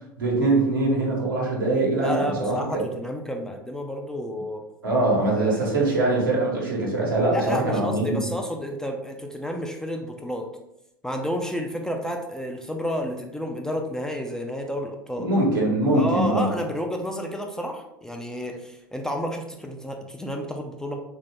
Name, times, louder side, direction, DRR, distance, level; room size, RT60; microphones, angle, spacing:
voice 1, 0.2-2.6 4.8-8.2 15.2-16.4, right 2 dB, 75° right, -3 dB, 1.3 m, -22 dB
voice 2, 2.0-4.6 5.4-5.9 7.3-10.5 11.0-15.3 15.9-21.0, equal, 5° left, 2 dB, 0.4 m, -30 dB
3.6 x 2.7 x 3.2 m, 0.86 s
figure-of-eight pair, 80°, 12 cm